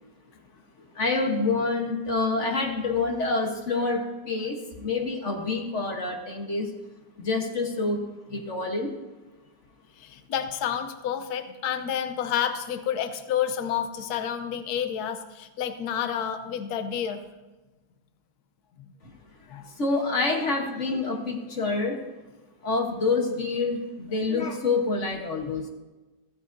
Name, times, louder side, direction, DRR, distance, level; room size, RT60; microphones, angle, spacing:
voice 1, 0.9-6.7 7.2-8.0 8.3-9.0 19.0-19.2 19.7-22.0 22.6-25.7, left 3 dB, 45° left, 2 dB, 1.5 m, -27 dB
voice 2, 10.0-17.2 18.8-18.9 19.5-19.7 25.4-25.5, left 9 dB, 70° left, 8 dB, 1.3 m, -30 dB
15.5 x 14.0 x 2.7 m, 1.2 s
omnidirectional pair, 1.8 m